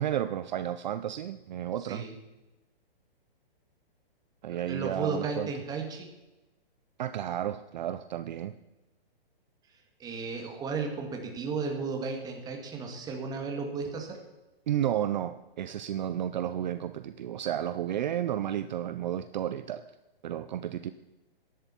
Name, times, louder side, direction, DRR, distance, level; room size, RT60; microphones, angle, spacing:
voice 1, 0.0-2.0 4.4-5.5 7.0-8.5 14.7-19.8 20.2-20.9, right 11 dB, 50° right, 12 dB, 0.6 m, -32 dB
voice 2, 1.8-2.1 4.5-6.1 10.0-14.2, right 4 dB, 15° right, 3 dB, 1.9 m, -34 dB
15.0 x 11.0 x 4.4 m, 1.0 s
hypercardioid pair, 155°, 30 cm